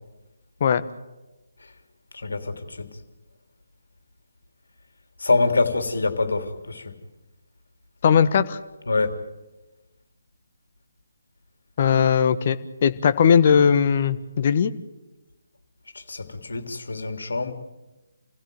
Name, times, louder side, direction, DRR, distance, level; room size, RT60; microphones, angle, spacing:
voice 1, 2.1-2.9 5.2-6.9 8.9-9.2 16.1-17.5, left 3 dB, 65° left, 8 dB, 3.2 m, -25 dB
voice 2, 8.0-8.6 11.8-14.7, left 7 dB, 40° left, 11 dB, 1.4 m, -19 dB
28.5 x 16.0 x 9.3 m, 1.1 s
figure-of-eight pair, 145°, 0 cm